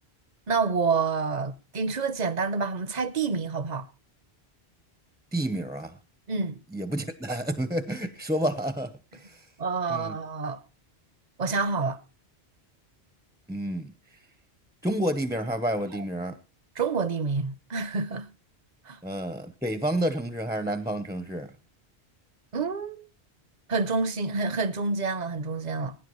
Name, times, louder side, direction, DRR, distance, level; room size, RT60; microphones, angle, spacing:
voice 1, 0.5-3.9 6.3-6.6 9.6-10.6 11.4-12.0 16.8-18.3 18.9-19.0 22.5-23.1 23.7-26.0, right 4 dB, 45° right, 0.9 m, -28 dB
voice 2, 5.3-6.0 6.7-9.4 9.9-10.2 13.5-13.9 14.8-16.4 19.0-21.5, right 1 dB, 5° right, 0.7 m, -30 dB
21.0 x 10.0 x 3.1 m
omnidirectional pair, 1.1 m